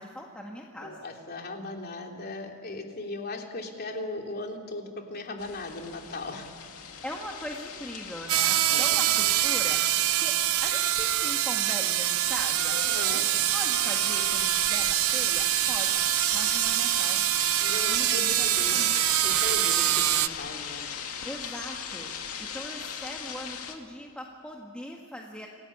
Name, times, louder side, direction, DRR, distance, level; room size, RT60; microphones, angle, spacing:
voice 1, 0.0-1.1 7.0-9.8 10.2-12.8 13.1-16.0 16.3-17.3 17.9-19.0 21.2-22.1 22.4-25.5, equal, 5° left, -1 dB, 1.8 m, -40 dB
voice 2, 0.8-4.8 5.1-6.5 8.7-9.0 12.7-13.3 17.6-20.9, left 2 dB, 50° left, 2 dB, 3.3 m, -38 dB
sound 1, 5.4-23.7, left 7 dB, 80° left, 2.4 m, -39 dB
sound 2, 8.3-20.3, right 13 dB, 75° right, 0.7 m, -25 dB
27.5 x 18.0 x 8.7 m, 2.4 s
head